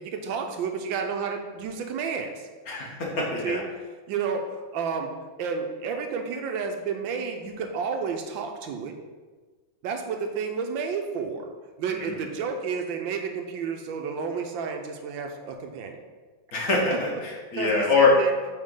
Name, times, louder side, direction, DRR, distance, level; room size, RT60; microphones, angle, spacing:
voice 1, 0.0-2.5 3.4-3.6 4.1-5.1 5.4-9.0 9.8-11.5 11.8-16.0 16.9-17.0 17.6-18.3, right 5 dB, 80° right, 5 dB, 1.4 m, -31 dB
voice 2, 2.7-3.6 11.9-12.1 16.5-18.1, left 3 dB, 55° left, -2 dB, 1.5 m, -24 dB
8.6 x 3.9 x 3.7 m, 1.4 s
omnidirectional pair, 2.1 m